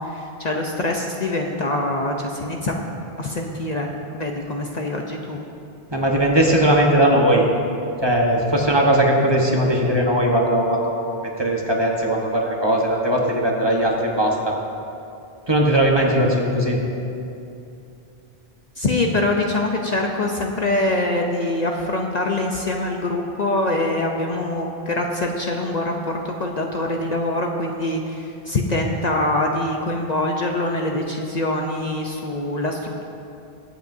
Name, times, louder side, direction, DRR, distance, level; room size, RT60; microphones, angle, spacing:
voice 1, 0.0-2.8 3.2-3.9 4.1-5.4 18.8-33.0, left 2 dB, 45° left, 1 dB, 0.8 m, -24 dB
voice 2, 5.9-7.4 8.0-14.5 15.5-16.8, right 1 dB, 25° right, -1 dB, 1.2 m, -19 dB
22.0 x 7.9 x 2.7 m, 2.7 s
omnidirectional pair, 1.0 m